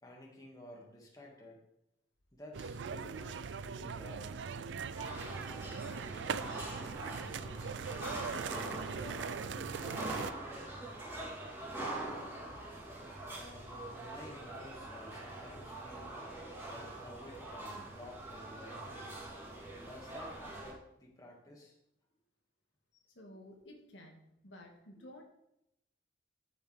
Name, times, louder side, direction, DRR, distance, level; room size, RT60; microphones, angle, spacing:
voice 1, 0.0-1.6 2.3-4.5 5.3-7.7 8.3-9.7 9.9-10.9 13.3-16.2 16.6-19.2 19.8-21.8 22.9-23.4 25.0-25.1, left 1 dB, 20° left, -1 dB, 2.0 m, -53 dB
sound 1, 2.5-10.3, right 6 dB, 75° right, 0.4 m, -40 dB
sound 2, 4.9-20.7, right 2 dB, 15° right, 3.3 m, -44 dB
voice 2, 23.2-25.2, left 1 dB, 80° left, 1 dB, 1.8 m, -53 dB
11.5 x 8.0 x 3.4 m, 0.82 s
head